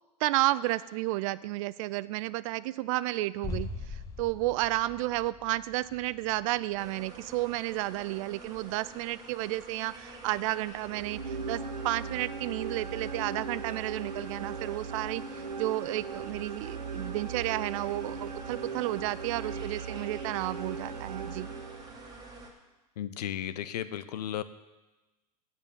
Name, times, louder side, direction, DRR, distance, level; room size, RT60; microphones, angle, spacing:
voice 1, 0.2-21.5, right 18 dB, 55° right, 18 dB, 0.4 m, -32 dB
sound 1, 3.4-9.2 9.4-9.5, left 3 dB, 15° left, 1.0 m, -43 dB
sound 2, 6.8-22.5, right 3 dB, 20° right, 1.8 m, -48 dB
sound 3, 10.8-22.2, right 5 dB, 85° right, 0.8 m, -38 dB
voice 2, 23.0-24.4, left 10 dB, 75° left, 14 dB, 0.7 m, -34 dB
8.5 x 7.2 x 7.0 m, 1.1 s
hypercardioid pair, 95°, 21 cm